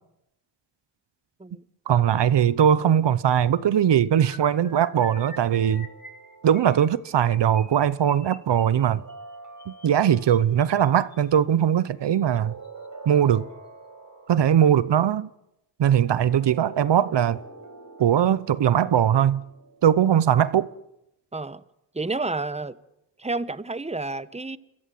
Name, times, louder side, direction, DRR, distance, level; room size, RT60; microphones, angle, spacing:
voice 1, 1.9-5.9 6.4-9.0 9.7-12.5 13.1-13.5 14.3-15.3 15.8-17.4 18.0-19.4 19.8-20.7, right 9 dB, 80° right, 0.9 m, -20 dB
sound 1, 4.2-11.4 12.1-12.4 12.6-12.9 13.1-13.4, left 2 dB, 25° left, 3.5 m, -48 dB
sound 2, 4.6-7.1 8.8-10.6 12.0-14.7 16.0-20.6, right 3 dB, 45° right, 5.2 m, -46 dB
voice 2, 21.3-21.6 21.9-22.8 23.2-24.6, right 3 dB, 15° right, 1.2 m, -30 dB
27.0 x 22.5 x 7.8 m
cardioid pair, 55°, 41 cm